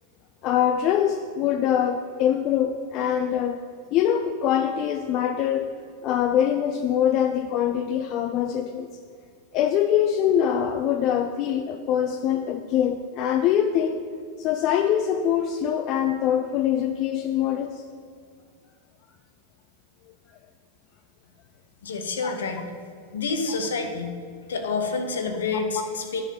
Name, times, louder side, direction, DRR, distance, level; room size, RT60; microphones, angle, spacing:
voice 1, 0.4-3.6 3.9-5.7 6.0-8.9 9.5-13.9 14.4-17.8 22.2-22.3 25.8-25.9, left 9 dB, 40° left, 7 dB, 0.4 m, -23 dB
voice 2, 21.8-22.6 23.1-24.1 24.5-26.2, left 4 dB, 65° left, 5 dB, 0.9 m, -28 dB
10.0 x 4.3 x 5.5 m, 2.2 s
figure-of-eight pair, 90°, 0 cm